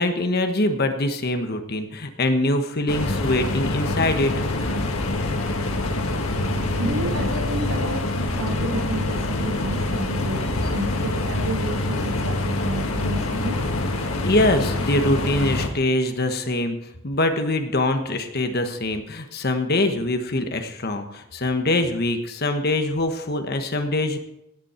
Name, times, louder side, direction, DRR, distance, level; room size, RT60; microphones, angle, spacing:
voice 1, 0.0-4.3 14.2-24.2, left 1 dB, 50° left, 6 dB, 1.2 m, -23 dB
sound 1, 2.9-15.7, left 2 dB, 85° left, 1.7 m, -25 dB
sound 2, 4.2-10.8, equal, 5° left, 2.6 m, -40 dB
voice 2, 6.1-13.6, right 1 dB, 70° right, 3 dB, 2.0 m, -31 dB
17.0 x 8.4 x 4.5 m, 0.84 s
head